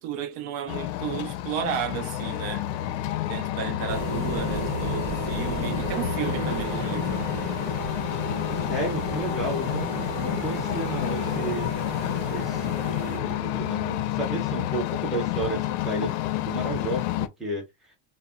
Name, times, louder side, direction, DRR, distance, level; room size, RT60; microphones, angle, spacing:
voice 1, 0.0-2.6 3.3-7.2, right 9 dB, 70° right, 0.7 m, -33 dB
sound 1, 0.7-17.3, left 13 dB, 90° left, 0.5 m, -29 dB
sound 2, 3.9-13.2, right 3 dB, 45° right, 1.0 m, -34 dB
voice 2, 8.7-11.7 12.3-17.6, right 2 dB, ahead, 0.5 m, -32 dB
2.1 x 2.1 x 3.6 m
cardioid pair, 170°, 36 cm